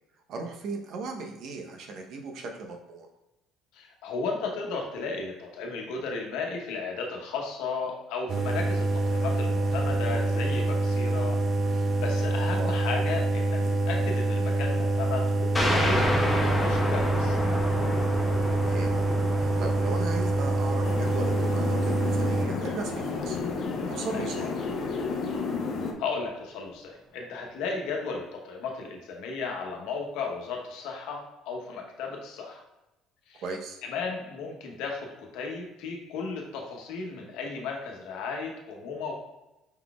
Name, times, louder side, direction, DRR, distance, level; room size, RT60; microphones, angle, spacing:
voice 1, 0.3-3.1 12.5-12.8 18.6-19.0 19.3-23.4 23.9-24.5 33.4-33.8, right 3 dB, 65° right, 2 dB, 0.9 m, -37 dB
voice 2, 3.7-11.4 11.7-17.4 24.1-24.5 26.0-32.6 33.3-33.4 33.8-39.1, left 4 dB, 80° left, 1 dB, 1.0 m, -35 dB
sound 1, 8.3-22.5, right 2 dB, 40° right, 0.6 m, -26 dB
sound 2, 15.5-24.8, left 1 dB, 15° left, 0.9 m, -31 dB
sound 3, 20.8-25.9, left 4 dB, 55° left, 0.7 m, -32 dB
5.6 x 3.9 x 2.4 m, 0.98 s
supercardioid pair, 90°, 0 cm